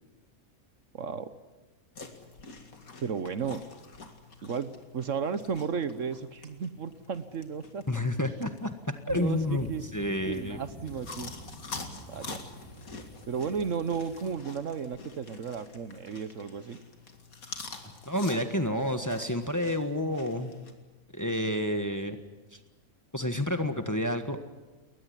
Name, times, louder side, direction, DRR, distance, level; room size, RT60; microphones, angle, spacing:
voice 1, 0.9-1.3 3.0-3.6 4.4-7.8 9.1-9.8 10.3-11.3 12.1-12.4 13.3-16.8, right 6 dB, 65° right, 12 dB, 1.3 m, -34 dB
sound 1, 2.0-20.7, left 4 dB, 75° left, 2.6 m, -47 dB
voice 2, 7.9-10.6 18.1-20.5 21.1-22.2 22.5-22.6 23.1-24.4, left 1 dB, 15° left, 7 dB, 1.4 m, -29 dB
sound 2, 9.1-14.3, equal, 35° left, 4.1 m, -47 dB
21.5 x 20.0 x 9.9 m, 1.2 s
omnidirectional pair, 1.5 m